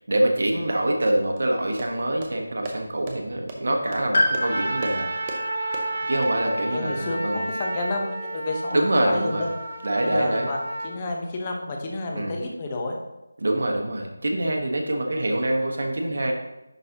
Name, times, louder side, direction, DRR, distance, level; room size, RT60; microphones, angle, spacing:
voice 1, 0.1-5.1 6.1-7.4 8.7-9.5 9.8-10.5 12.1-12.3 13.4-16.3, right 1 dB, 60° right, 2 dB, 1.2 m, -25 dB
sound 1, 1.4-6.3, right 2 dB, 20° right, 0.7 m, -39 dB
Piano, 4.1-8.3 9.5-9.6, left 1 dB, 50° left, 1.3 m, -29 dB
Trumpet, 4.3-10.9, right 1 dB, 40° right, 1.3 m, -31 dB
voice 2, 6.7-9.5 10.0-13.0, left 2 dB, 20° left, 1 dB, 0.8 m, -30 dB
10.5 x 4.0 x 2.9 m, 0.99 s
figure-of-eight pair, 170°, 0 cm